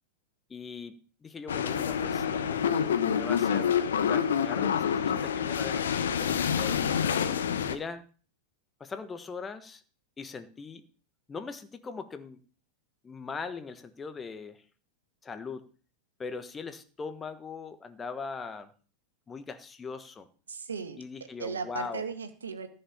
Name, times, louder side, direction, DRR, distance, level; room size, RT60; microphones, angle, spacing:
voice 1, 0.5-6.8 7.7-8.0 8.8-9.8 10.2-10.8 11.3-12.4 13.0-14.6 15.2-15.6 16.2-18.7 19.3-20.3 21.0-22.0, left 5 dB, 15° left, 10 dB, 1.3 m, -40 dB
sound 1, 1.5-7.8, left 8 dB, 65° left, 1.1 m, -27 dB
voice 2, 2.0-2.5 20.5-21.0 21.4-22.7, right 5 dB, 70° right, 8 dB, 1.8 m, -37 dB
14.5 x 5.7 x 7.1 m, 0.39 s
figure-of-eight pair, 90°, 0 cm